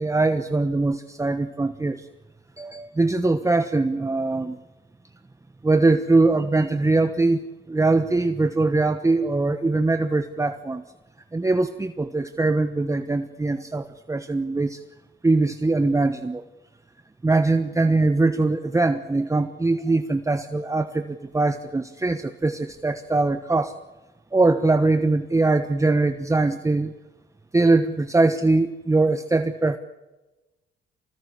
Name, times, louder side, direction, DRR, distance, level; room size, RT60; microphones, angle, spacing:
voice 1, 0.0-2.1 2.6-4.6 5.6-10.8 11.3-14.8 15.2-16.4 17.2-23.8 24.3-26.9 27.5-29.8, right 3 dB, 15° right, 9 dB, 1.1 m, -22 dB
24.5 x 19.0 x 9.8 m, 1.1 s
cardioid pair, 90°, 20 cm